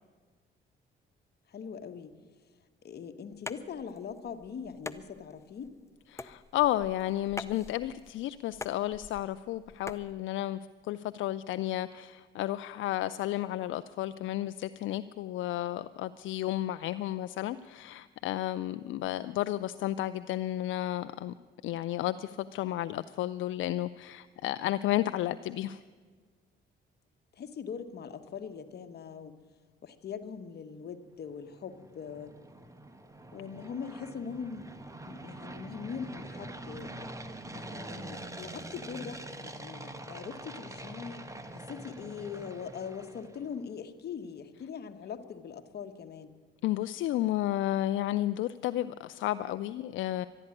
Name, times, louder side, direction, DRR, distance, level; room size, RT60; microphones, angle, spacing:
voice 1, 1.5-2.1 2.8-5.7 27.4-29.4 29.8-32.3 33.3-34.8 35.1-36.9 37.5-46.3, left 6 dB, 55° left, 8 dB, 1.2 m, -41 dB
sound 1, 3.3-10.1, left 3 dB, 15° left, 0.6 m, -45 dB
voice 2, 6.1-10.6 10.9-21.3 21.6-25.8 46.6-50.3, left 14 dB, 75° left, 13 dB, 0.4 m, -32 dB
sound 2, 31.3-43.6, right 1 dB, 15° right, 1.2 m, -45 dB
12.0 x 11.5 x 9.7 m, 1.5 s
cardioid pair, 90°, 20 cm